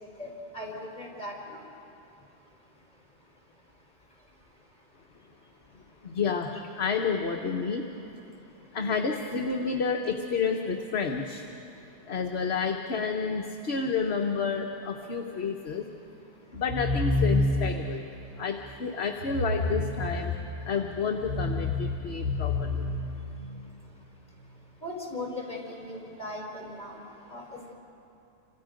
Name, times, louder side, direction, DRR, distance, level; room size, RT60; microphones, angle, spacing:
voice 1, 0.5-1.6 24.8-27.0 27.3-27.7, left 1 dB, 35° left, -2 dB, 5.1 m, -38 dB
voice 2, 6.0-6.5 6.8-7.8 8.7-11.4 12.1-15.8 16.5-18.0 18.4-20.3 20.6-22.7, left 5 dB, 60° left, 3 dB, 1.3 m, -30 dB
sound 1, 16.5-17.8 19.2-20.6 21.1-23.6, left 2 dB, 30° right, 3.6 m, -29 dB
29.5 x 26.5 x 5.2 m, 2.9 s
omnidirectional pair, 1.2 m